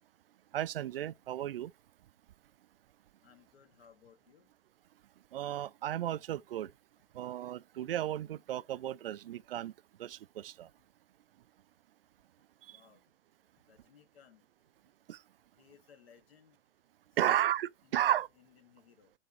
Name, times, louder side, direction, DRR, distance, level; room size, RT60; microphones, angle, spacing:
voice 1, 0.5-1.7 5.3-6.7 7.1-9.7 10.0-10.7 12.7-12.8 15.1-15.2 17.2-18.3, right 12 dB, 55° right, 0.4 m, -33 dB
voice 2, 3.2-4.5 12.7-13.0 13.7-14.4 15.6-16.6 17.2-17.5 17.8-19.1, left 7 dB, 55° left, 1.8 m, -61 dB
10.5 x 3.5 x 2.7 m
hypercardioid pair, 135°, 35 cm